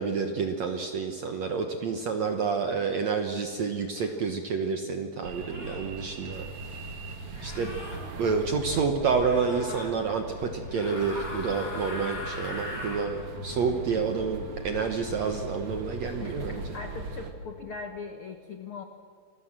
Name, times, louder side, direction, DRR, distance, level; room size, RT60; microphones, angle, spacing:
voice 1, 0.0-6.5 7.4-7.7 8.2-16.6, right 5 dB, 65° right, 5 dB, 1.7 m, -29 dB
sound 1, 4.0-4.2 5.4-5.9 7.3-8.0 9.2-9.9 10.7-13.1, left 2 dB, 30° left, 5.9 m, -39 dB
sound 2, 5.2-17.3, right 2 dB, 45° right, 2.0 m, -39 dB
voice 2, 16.2-18.8, left 4 dB, 85° left, 6 dB, 1.2 m, -40 dB
29.0 x 21.0 x 7.4 m, 2.4 s
omnidirectional pair, 4.8 m